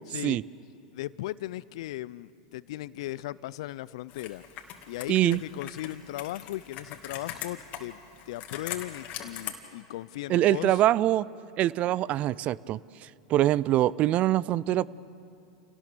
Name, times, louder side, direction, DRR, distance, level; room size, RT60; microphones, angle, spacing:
voice 1, 0.1-0.4 0.9-4.4 4.9-8.0 8.3-10.8, left 16 dB, 65° left, 20 dB, 0.5 m, -37 dB
Computer keyboard, 4.1-9.5, left 10 dB, 45° left, 2.3 m, -41 dB
voice 2, 5.1-5.4 10.3-11.3 11.6-14.9, right 14 dB, 40° right, 22 dB, 0.5 m, -24 dB
28.0 x 18.0 x 6.9 m, 2.6 s
hypercardioid pair, 95°, 3 cm